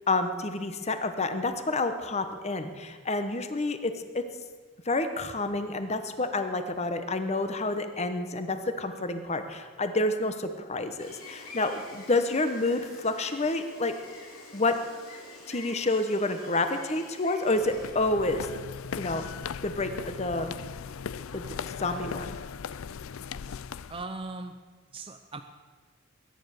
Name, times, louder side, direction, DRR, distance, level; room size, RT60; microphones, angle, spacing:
voice 1, 0.1-4.2 4.8-13.9 14.5-14.7 15.5-18.5 19.0-19.3 19.6-20.5 21.3-21.4 21.8-22.4, left 2 dB, 30° left, 8 dB, 1.2 m, -29 dB
Gull seagull, 11.0-17.9, left 2 dB, 85° left, 4.2 m, -47 dB
sound 1, 17.5-24.0, left 6 dB, 70° left, 0.4 m, -38 dB
voice 2, 23.9-24.6 24.9-25.4, right 3 dB, 25° right, 6 dB, 0.6 m, -38 dB
21.5 x 10.0 x 6.7 m, 1.5 s
head